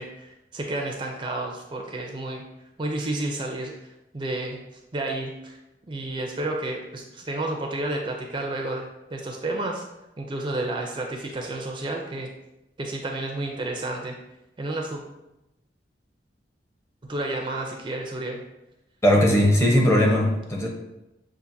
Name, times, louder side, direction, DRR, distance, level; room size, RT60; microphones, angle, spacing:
voice 1, 0.0-2.4 2.8-3.7 4.1-4.6 4.9-5.6 5.9-9.8 10.2-12.3 12.8-14.2 14.6-15.0 17.1-18.4, right 2 dB, 25° right, 1 dB, 0.4 m, -31 dB
voice 2, 19.0-20.7, equal, 15° left, -1 dB, 0.7 m, -19 dB
6.8 x 2.5 x 2.6 m, 0.94 s
head